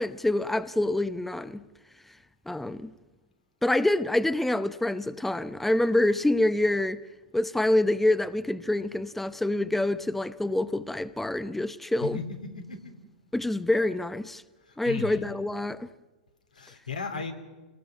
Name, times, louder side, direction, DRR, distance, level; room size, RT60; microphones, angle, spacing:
voice 1, 0.0-1.6 2.5-2.9 3.6-7.0 7.3-12.2 13.3-14.4 14.8-15.9, left 1 dB, 5° left, 0.8 m, -26 dB
voice 2, 12.0-12.8 14.7-15.3 16.5-17.3, left 5 dB, 90° left, 3.5 m, -36 dB
29.0 x 19.5 x 6.1 m
hypercardioid pair, 100°, 4 cm